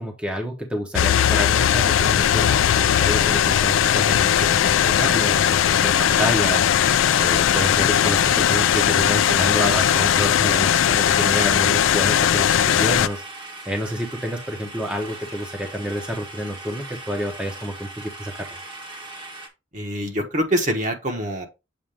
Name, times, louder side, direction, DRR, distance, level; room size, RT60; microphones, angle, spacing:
voice 1, 0.0-18.5, equal, 5° right, 0.9 m, -29 dB
sound 1, 0.9-13.1, left 10 dB, 85° left, 0.3 m, -19 dB
sound 2, 2.1-19.5, right 2 dB, 25° right, 1.2 m, -39 dB
voice 2, 19.7-21.5, equal, 40° right, 1.3 m, -25 dB
7.4 x 2.6 x 5.0 m
head